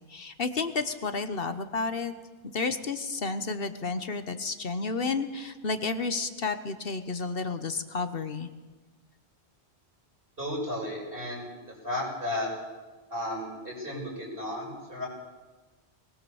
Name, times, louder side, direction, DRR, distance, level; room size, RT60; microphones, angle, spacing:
voice 1, 0.1-2.1 2.5-8.5, left 4 dB, 60° left, 10 dB, 1.3 m, -31 dB
voice 2, 10.4-11.5 11.8-12.5 13.1-15.1, left 1 dB, 55° right, -2 dB, 7.2 m, -33 dB
21.5 x 20.0 x 7.1 m, 1.2 s
omnidirectional pair, 1.1 m